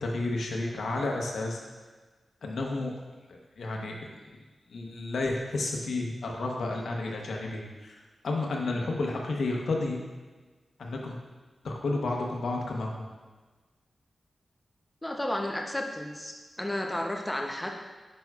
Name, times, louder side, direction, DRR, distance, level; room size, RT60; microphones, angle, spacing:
voice 1, 0.0-1.6 2.4-2.9 3.6-3.9 4.7-8.0 8.2-10.0 10.8-11.2 11.6-13.1, left 2 dB, 85° left, 0 dB, 0.9 m, -31 dB
voice 2, 15.0-17.7, left 1 dB, 10° left, 2 dB, 0.7 m, -32 dB
9.0 x 5.3 x 2.4 m, 1.3 s
wide cardioid pair, 120°, 0 cm